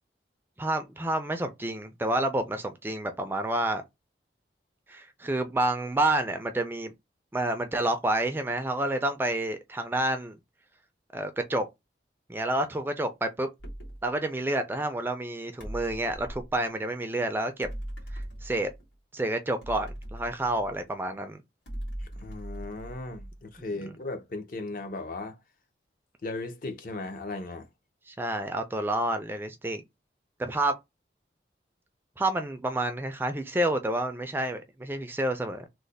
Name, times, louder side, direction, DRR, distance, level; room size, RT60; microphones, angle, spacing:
voice 1, 0.6-3.8 4.9-6.9 7.3-10.4 11.1-11.7 12.3-13.5 14.0-17.7 18.1-18.7 19.1-21.4 28.1-29.8 30.4-30.8 32.2-35.7, right 1 dB, 10° right, 0.3 m, -29 dB
sound 1, 13.6-14.1 15.6-16.5 17.6-18.9 19.6-21.0 21.7-23.6, right 1 dB, 85° left, 1.7 m, -40 dB
voice 2, 22.0-25.4 26.2-27.7, left 2 dB, 50° left, 0.5 m, -37 dB
3.1 x 2.1 x 3.9 m
head